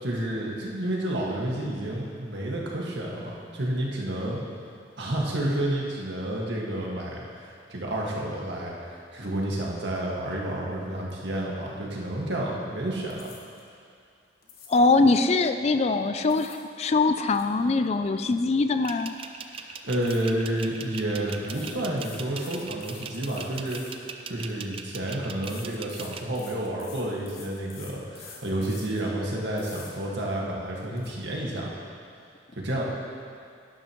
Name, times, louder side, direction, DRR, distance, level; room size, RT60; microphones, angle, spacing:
voice 1, 0.0-4.4 5.0-13.3 19.5-31.8 32.5-32.8, right 1 dB, 75° right, -3 dB, 1.8 m, -30 dB
sound 1, 13.1-13.7 14.4-15.0 16.0-16.7 17.0-18.9 19.2-19.4 20.0-20.7 21.4-24.6 25.4-29.1 29.6-29.9 30.4-30.5 30.8-31.1, left 6 dB, 55° left, 1.3 m, -48 dB
voice 2, 14.7-19.1, left 3 dB, 35° left, 9 dB, 0.4 m, -22 dB
sound 2, 18.8-26.2, right 6 dB, 30° right, 0.4 m, -39 dB
12.0 x 11.0 x 3.1 m, 2.3 s
head